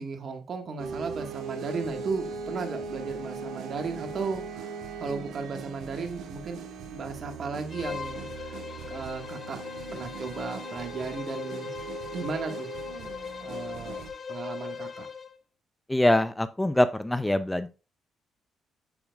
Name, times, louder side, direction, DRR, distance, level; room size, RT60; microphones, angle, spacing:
voice 1, 0.0-4.7 5.0-6.6 6.9-8.6 8.9-9.6 9.9-11.7 12.1-12.7 13.3-14.0 14.3-15.1, right 4 dB, 50° right, 4 dB, 1.7 m, -35 dB
sound 1, 0.8-14.1, right 5 dB, 75° right, 1.8 m, -39 dB
Bowed string instrument, 7.7-15.4, left 6 dB, 45° left, 0.7 m, -39 dB
voice 2, 15.9-17.7, left 1 dB, 10° left, 12 dB, 0.5 m, -24 dB
7.0 x 6.8 x 2.4 m, 0.30 s
cardioid pair, 90°, 0 cm